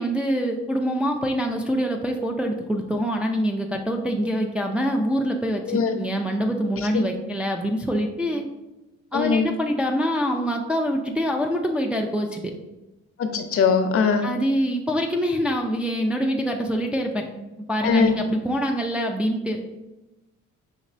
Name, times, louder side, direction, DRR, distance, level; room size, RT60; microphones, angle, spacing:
voice 1, 0.0-8.4 9.1-12.5 14.2-17.2 17.7-19.7, equal, 5° right, 1 dB, 0.3 m, -25 dB
voice 2, 9.1-9.4 13.2-14.3 17.8-18.1, left 5 dB, 50° left, 7 dB, 0.5 m, -21 dB
5.3 x 3.0 x 2.5 m, 1.0 s
cardioid pair, 90°, 30 cm